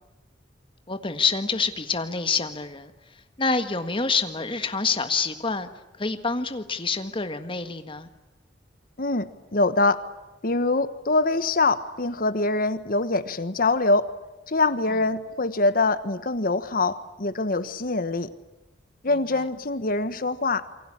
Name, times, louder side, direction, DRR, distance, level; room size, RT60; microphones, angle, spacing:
voice 1, 0.9-2.9 3.4-5.7 6.0-8.1, left 4 dB, 30° left, 8 dB, 1.6 m, -27 dB
voice 2, 9.0-10.0 10.4-14.1 14.5-18.3 19.0-20.7, left 3 dB, 50° left, 12 dB, 1.3 m, -24 dB
28.0 x 23.5 x 8.8 m, 1.0 s
head